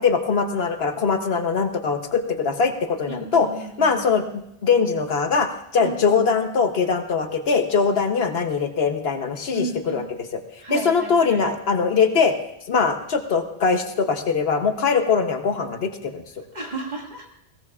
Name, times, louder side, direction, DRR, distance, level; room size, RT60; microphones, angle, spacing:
voice 1, 0.0-3.5 3.8-4.2 4.6-10.4 10.7-12.3 12.7-16.2, left 5 dB, 70° left, 6 dB, 1.1 m, -22 dB
voice 2, 3.0-4.0 5.8-6.0 9.5-10.1 10.6-11.4 16.4-17.3, right 2 dB, 40° right, 0 dB, 2.1 m, -33 dB
21.0 x 16.5 x 2.4 m, 0.79 s
omnidirectional pair, 1.1 m